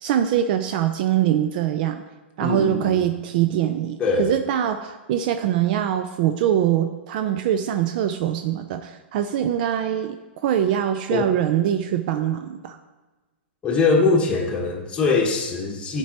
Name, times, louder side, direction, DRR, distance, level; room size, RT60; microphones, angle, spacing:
voice 1, 0.0-2.0 2.4-10.2 10.4-12.8, right 10 dB, 50° right, 8 dB, 0.4 m, -23 dB
voice 2, 2.4-3.1 4.0-4.4 11.1-11.3 13.6-16.0, left 4 dB, 15° left, -2 dB, 1.2 m, -22 dB
11.0 x 4.5 x 2.9 m, 1.2 s
hypercardioid pair, 110°, 6 cm